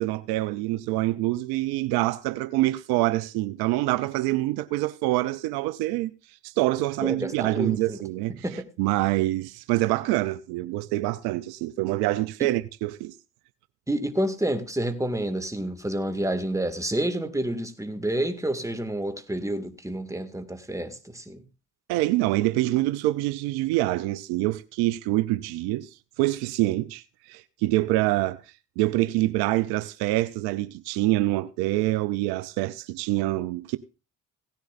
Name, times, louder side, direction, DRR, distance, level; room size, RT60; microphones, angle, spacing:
voice 1, 0.0-6.1 6.4-8.3 8.8-13.1 21.9-25.9 26.2-27.0 27.3-28.4 28.8-33.8, right 17 dB, 85° right, 0.6 m, -25 dB
voice 2, 7.0-8.0 8.4-8.7 12.4-12.5 13.9-21.4, right 1 dB, 10° right, 2.1 m, -29 dB
17.0 x 10.5 x 2.6 m
supercardioid pair, 55°, 37 cm